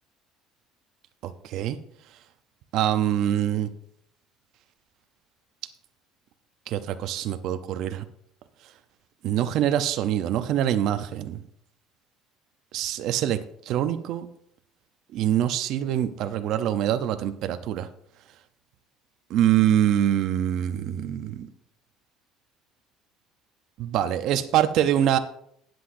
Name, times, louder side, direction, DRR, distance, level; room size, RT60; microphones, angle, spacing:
voice 1, 1.2-1.8 2.7-3.7 6.7-8.0 9.2-11.4 12.7-13.4 13.7-14.3 15.1-17.9 19.3-21.5 23.8-25.2, right 11 dB, 50° right, 10 dB, 0.6 m, -24 dB
20.0 x 7.8 x 2.6 m, 0.72 s
cardioid pair, 180°, 0 cm